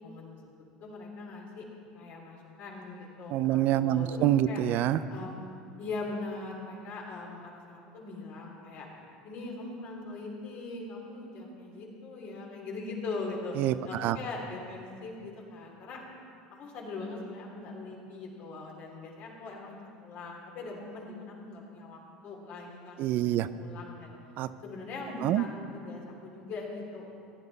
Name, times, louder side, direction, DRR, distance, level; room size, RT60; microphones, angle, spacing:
voice 1, 0.0-1.6 1.9-4.6 5.1-5.3 5.8-8.9 9.2-13.6 13.8-16.0 16.5-23.1 23.6-24.1 24.6-27.1, left 3 dB, 55° left, -2 dB, 3.0 m, -41 dB
voice 2, 3.3-5.0 13.6-14.2 23.0-23.5 24.4-24.5 25.2-25.4, right 12 dB, 55° right, 14 dB, 0.4 m, -26 dB
15.5 x 9.9 x 4.1 m, 2.5 s
supercardioid pair, 95°, 4 cm